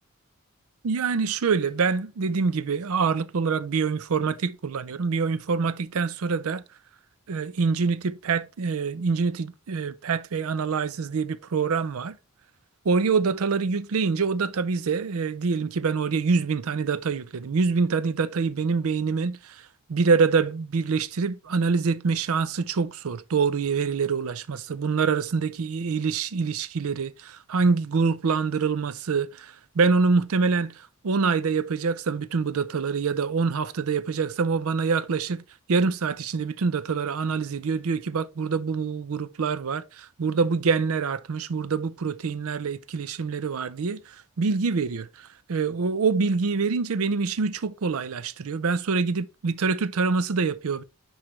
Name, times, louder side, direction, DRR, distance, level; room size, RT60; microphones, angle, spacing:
voice 1, 0.8-6.6 7.3-12.2 12.9-19.6 19.9-35.4 35.7-50.8, right 5 dB, 75° right, 0.5 m, -25 dB
9.7 x 3.3 x 3.1 m
head